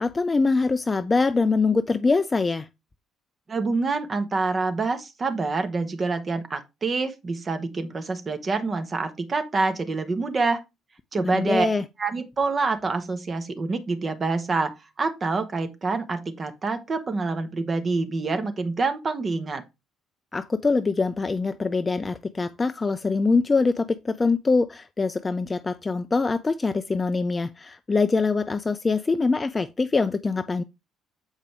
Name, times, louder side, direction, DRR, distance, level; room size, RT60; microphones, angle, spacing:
voice 1, 0.0-2.7 11.2-11.8 20.3-30.6, left 4 dB, 25° left, 0.4 m, -24 dB
voice 2, 3.5-10.6 11.1-11.7 12.0-19.6, right 3 dB, 35° right, 1.2 m, -26 dB
7.3 x 5.0 x 3.3 m
hypercardioid pair, 50°, 0 cm